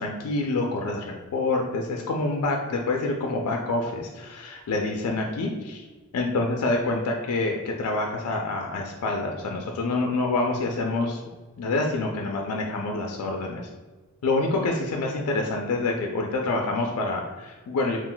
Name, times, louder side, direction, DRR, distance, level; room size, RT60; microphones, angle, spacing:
voice 1, 0.0-5.8 6.1-11.2 11.6-13.7 14.2-18.0, left 2 dB, 90° left, 1 dB, 0.4 m, -27 dB
2.4 x 2.2 x 3.8 m, 1.3 s
head